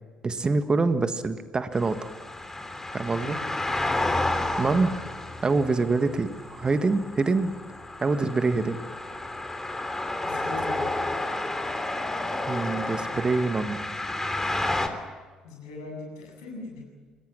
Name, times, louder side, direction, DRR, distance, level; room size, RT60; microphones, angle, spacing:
voice 1, 0.2-2.1 2.9-3.4 4.6-4.9 5.4-7.5 8.0-8.8 12.5-13.8, right 3 dB, 25° right, 10 dB, 1.6 m, -25 dB
sound 1, 1.7-14.9, left 2 dB, 15° left, 3.2 m, -31 dB
voice 2, 3.1-3.4 4.6-4.8 10.2-10.9 15.4-16.8, left 3 dB, 70° left, 0 dB, 7.8 m, -40 dB
26.0 x 21.0 x 7.5 m, 1.5 s
figure-of-eight pair, 50°, 3 cm